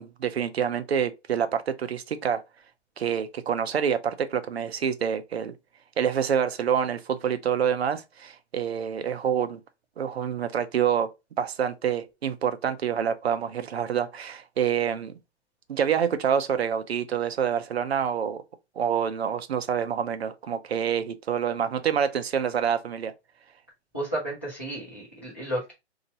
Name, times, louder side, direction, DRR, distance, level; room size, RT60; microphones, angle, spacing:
voice 1, 0.0-2.4 3.0-5.5 6.0-9.6 10.0-11.1 11.4-15.1 15.7-18.4 18.8-23.1, right 8 dB, 65° right, 0.7 m, -27 dB
voice 2, 23.9-25.7, right 1 dB, 10° left, 0.4 m, -32 dB
2.8 x 2.8 x 4.0 m
hypercardioid pair, 165°, 34 cm